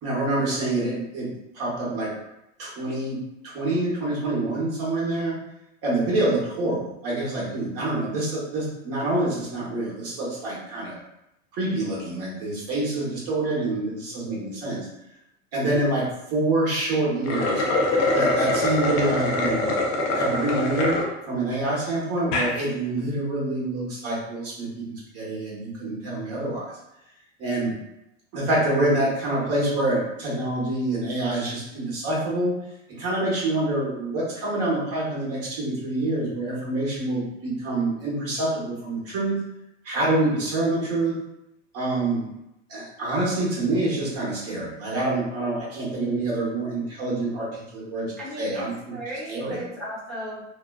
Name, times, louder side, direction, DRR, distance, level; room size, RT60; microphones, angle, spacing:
voice 1, 0.0-2.1 2.6-5.4 5.8-10.9 11.5-14.9 15.5-17.6 18.1-19.7 20.1-21.0 21.3-26.7 27.4-27.8 28.3-32.5 32.9-39.4 39.8-41.2 41.7-42.3 42.7-48.1 48.4-48.9 49.3-49.6, right 2 dB, 40° right, -5 dB, 1.0 m, -26 dB
sound 1, 17.1-21.1 21.6-21.7 22.2-22.5, left 2 dB, 40° left, 0.5 m, -24 dB
voice 2, 48.0-48.6 48.9-50.4, equal, ahead, -11 dB, 0.9 m, -36 dB
2.6 x 2.1 x 2.3 m, 0.85 s
hypercardioid pair, 100°, 38 cm